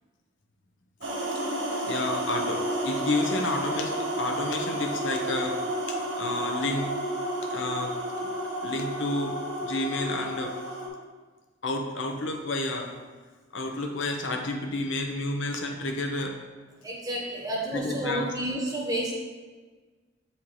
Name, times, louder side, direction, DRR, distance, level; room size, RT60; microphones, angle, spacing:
sound 1, 1.0-10.9, right 1 dB, 80° right, 1.3 m, -31 dB
voice 1, 1.7-5.6 5.8-6.9 7.5-7.9 8.6-9.3 9.6-10.5 11.6-12.9 13.5-16.3 17.7-18.3, left 2 dB, 80° left, 3 dB, 0.8 m, -30 dB
voice 2, 16.8-19.1, right 1 dB, 20° right, -4 dB, 1.2 m, -30 dB
7.3 x 4.3 x 3.2 m, 1.4 s
head